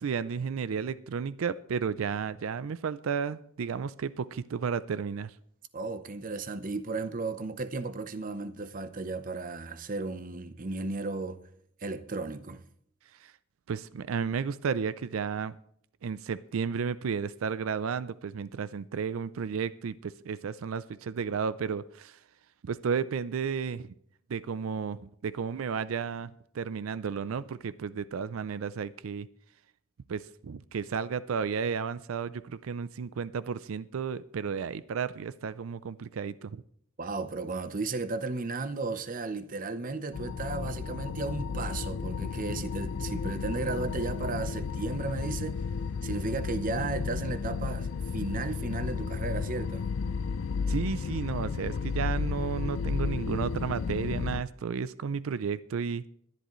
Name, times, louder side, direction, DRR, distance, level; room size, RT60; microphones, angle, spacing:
voice 1, 0.0-5.3 13.2-13.3 13.7-15.6 16.0-22.2 22.7-23.9 24.3-29.3 30.1-36.6 50.7-56.0, right 6 dB, 90° right, 0.4 m, -33 dB
voice 2, 5.7-11.4 11.8-12.6 37.0-45.6 46.0-49.9, right 3 dB, 40° right, 0.7 m, -34 dB
sound 1, 40.1-54.4, left 5 dB, 70° left, 0.4 m, -33 dB
21.0 x 10.5 x 3.1 m
head